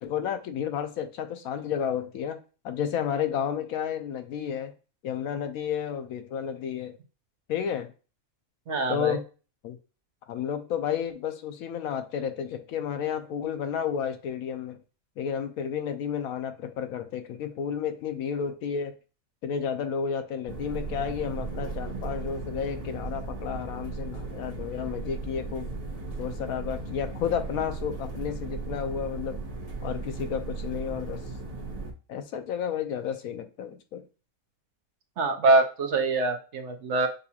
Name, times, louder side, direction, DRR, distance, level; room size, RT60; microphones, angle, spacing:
voice 1, 0.0-2.4 2.6-4.7 5.0-7.0 7.5-7.9 8.9-9.2 9.6-9.8 10.3-14.8 15.2-18.9 19.4-25.7 26.2-29.4 29.8-31.2 32.1-34.0, left 8 dB, 80° left, 1.1 m, -31 dB
voice 2, 8.7-9.2 35.2-37.1, right 2 dB, 60° right, 0.9 m, -24 dB
sound 1, 20.5-31.9, right 3 dB, 30° right, 0.9 m, -36 dB
6.7 x 2.3 x 2.8 m
omnidirectional pair, 1.5 m